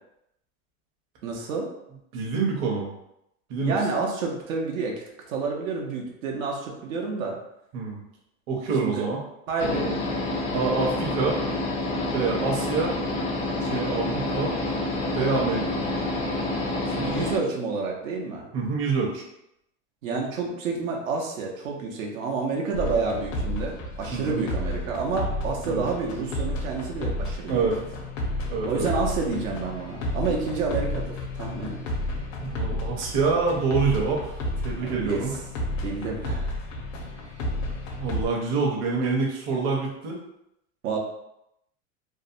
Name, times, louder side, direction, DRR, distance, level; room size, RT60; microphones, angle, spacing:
voice 1, 1.2-1.7 3.6-7.4 8.8-9.0 9.5-10.0 16.9-18.5 20.0-27.7 28.6-31.8 34.8-35.2 35.8-36.6 40.8-41.0, right 4 dB, 90° right, -1 dB, 0.8 m, -29 dB
voice 2, 2.1-2.9 3.5-3.8 7.7-8.0 8.5-9.2 10.5-11.4 12.1-12.9 13.6-14.5 15.1-15.8 18.5-19.2 24.1-24.4 25.6-25.8 27.5-27.8 28.5-28.9 32.4-34.3 34.6-35.3 38.0-40.2, right 4 dB, 40° right, -2 dB, 0.7 m, -26 dB
sound 1, 9.6-17.4, left 2 dB, 20° left, 0.3 m, -28 dB
sound 2, 22.7-38.3, left 1 dB, 75° left, 0.7 m, -32 dB
2.7 x 2.0 x 2.6 m, 0.80 s
supercardioid pair, 140°, 40 cm